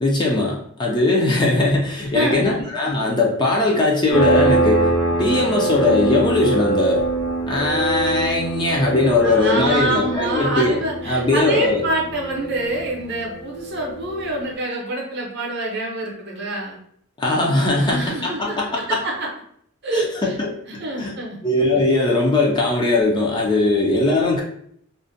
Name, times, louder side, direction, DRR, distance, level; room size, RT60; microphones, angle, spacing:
voice 1, 0.0-4.9 5.2-7.0 7.5-10.8 11.1-11.8 17.2-19.0 19.9-20.5 20.9-21.1 21.4-24.4, left 2 dB, 20° left, -2 dB, 0.3 m, -19 dB
voice 2, 2.1-2.6 9.2-16.8 17.8-18.6 18.9-19.3 19.8-20.3 20.7-21.4, right 2 dB, 50° right, -1 dB, 0.6 m, -26 dB
sound 1, 4.1-14.4, right 3 dB, 85° left, 0.8 m, -24 dB
2.5 x 2.1 x 2.5 m, 0.66 s
head